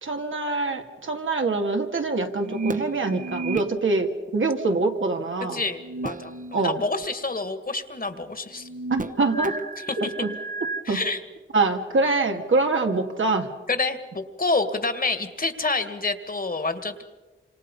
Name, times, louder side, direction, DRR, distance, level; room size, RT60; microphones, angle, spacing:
voice 1, 0.0-5.7 6.5-6.8 8.9-9.6 10.0-10.3 10.9-11.0 11.5-13.5, right 3 dB, 80° right, 3 dB, 2.3 m, -24 dB
sound 1, 2.4-3.7 5.7-6.7 7.0-7.1 8.5-10.8, right 2 dB, 40° right, 1.2 m, -32 dB
voice 2, 5.5-8.7 10.9-11.2 13.7-17.0, left 3 dB, 50° left, 9 dB, 2.0 m, -28 dB
28.5 x 26.0 x 5.5 m, 1.2 s
wide cardioid pair, 75°, 20 cm